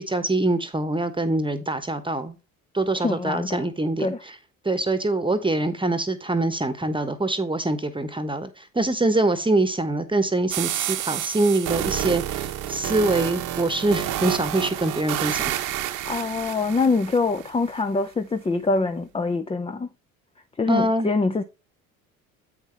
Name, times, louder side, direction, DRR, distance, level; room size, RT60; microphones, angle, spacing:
voice 1, 0.0-2.4 2.7-4.1 4.6-8.5 8.7-15.5 20.7-21.1, right 2 dB, 10° right, 1.2 m, -24 dB
voice 2, 3.0-3.6 4.0-4.2 16.1-19.9 20.6-21.4, left 3 dB, 15° left, 0.6 m, -24 dB
sound 1, 10.5-17.5, right 12 dB, 60° right, 1.2 m, -29 dB
8.1 x 5.7 x 3.3 m
hypercardioid pair, 65°, 41 cm